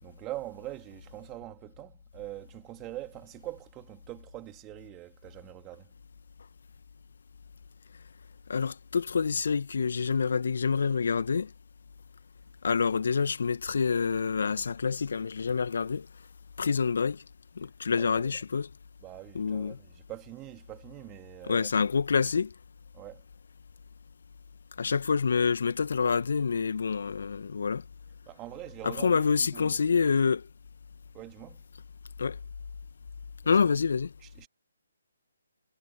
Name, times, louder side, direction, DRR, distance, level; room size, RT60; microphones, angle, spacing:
voice 1, 0.0-5.9 17.9-18.3 19.0-21.7 22.9-23.2 28.3-29.8 31.1-31.6 33.4-33.8 34.2-34.5, right 17 dB, 20° right, 3.0 m, -43 dB
voice 2, 8.5-11.5 12.6-16.1 16.6-17.2 17.6-18.7 19.4-19.8 21.5-22.5 24.8-27.8 28.8-30.5 32.2-32.4 33.5-34.1, left 5 dB, 60° left, 2.2 m, -27 dB
figure-of-eight pair, 145°, 0 cm